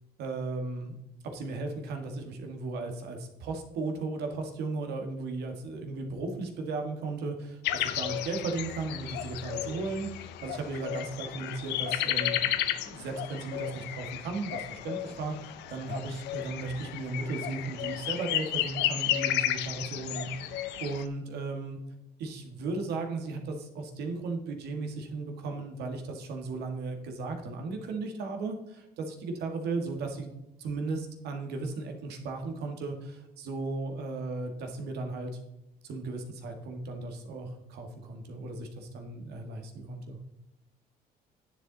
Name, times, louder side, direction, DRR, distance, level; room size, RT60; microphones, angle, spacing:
voice 1, 0.2-0.9 1.2-12.4 12.8-20.5 20.8-21.8 22.2-30.3 30.6-35.4 35.8-40.2, right 3 dB, 75° right, 4 dB, 1.7 m, -36 dB
sound 1, 7.6-21.0, left 12 dB, 85° left, 0.7 m, -33 dB
10.0 x 7.5 x 3.9 m, 0.91 s
cardioid pair, 110°, 17 cm